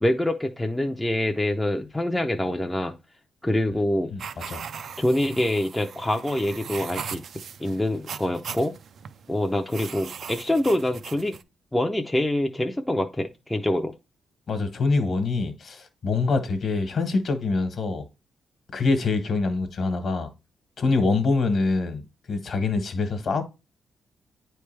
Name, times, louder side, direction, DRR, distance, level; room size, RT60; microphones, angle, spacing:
voice 1, 0.0-3.0 3.4-4.1 5.0-7.2 7.6-8.7 9.3-11.4 11.7-13.9, left 1 dB, 5° left, 0.5 m, -25 dB
voice 2, 4.1-4.6 14.5-18.1 18.7-20.3 20.8-23.4, left 3 dB, 50° left, 1.2 m, -25 dB
sound 1, 4.2-11.4, right 7 dB, 55° right, 0.4 m, -39 dB
9.3 x 3.3 x 3.2 m
cardioid pair, 130°, 0 cm